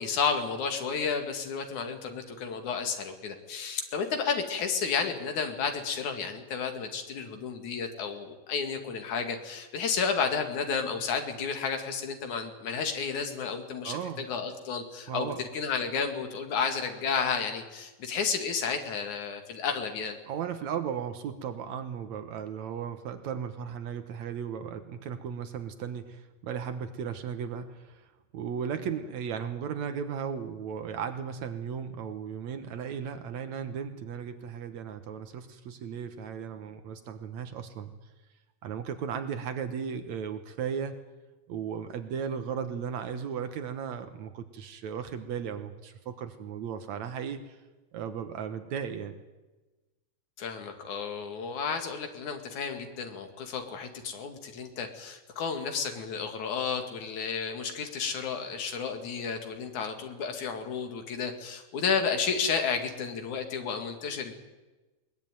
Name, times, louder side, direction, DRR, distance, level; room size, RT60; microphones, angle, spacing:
voice 1, 0.0-20.2 50.4-64.3, left 6 dB, 80° left, 5 dB, 3.6 m, -32 dB
voice 2, 13.8-14.3 15.1-15.4 20.3-28.1 28.3-37.9 38.6-41.0 41.5-47.6 47.9-49.2, right 7 dB, 75° right, 9 dB, 2.5 m, -36 dB
21.5 x 20.5 x 9.2 m, 1.2 s
omnidirectional pair, 3.3 m